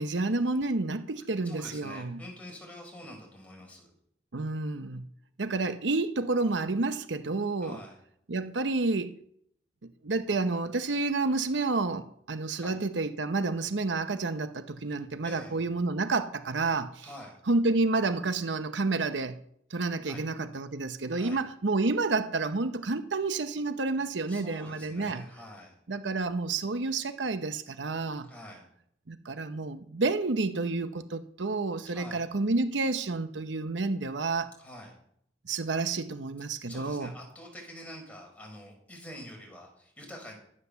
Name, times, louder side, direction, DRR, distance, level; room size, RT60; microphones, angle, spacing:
voice 1, 0.0-2.2 4.3-5.0 5.4-7.8 8.3-9.1 9.8-17.1 17.5-19.4 19.7-25.2 25.9-28.3 29.1-34.5 35.4-37.1, right 3 dB, 85° right, 0.9 m, -30 dB
voice 2, 1.4-3.9 7.6-8.0 12.6-12.8 15.2-15.5 17.0-17.4 20.0-20.2 21.1-21.4 24.3-25.7 28.3-28.6 31.9-32.2 34.6-34.9 36.7-40.3, left 1 dB, 10° left, 5.1 m, -46 dB
12.5 x 9.6 x 6.9 m
head